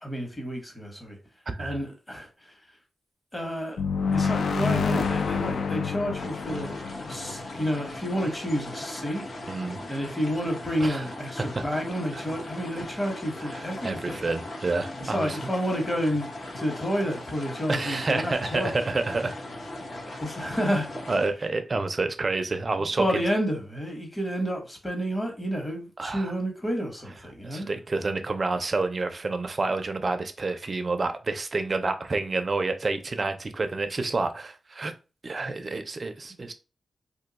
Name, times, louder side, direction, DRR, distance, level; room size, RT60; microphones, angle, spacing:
voice 1, 0.0-1.2 1.6-2.5 3.3-3.8 4.1-6.8 7.1-9.3 9.9-14.2 15.0-18.7 20.2-20.9 23.0-27.7, equal, 15° left, 1.0 m, -30 dB
voice 2, 1.5-1.8 9.5-9.8 10.8-11.0 11.5-11.6 12.1-12.2 13.5-15.4 17.7-19.3 21.1-23.2 26.0-26.3 27.4-34.9 35.2-36.5, right 3 dB, 35° right, 0.4 m, -29 dB
sound 1, 3.8-8.4, left 5 dB, 80° left, 0.3 m, -28 dB
sound 2, 6.2-21.3, left 2 dB, 50° left, 0.7 m, -39 dB
2.6 x 2.2 x 3.9 m
wide cardioid pair, 120°, 0 cm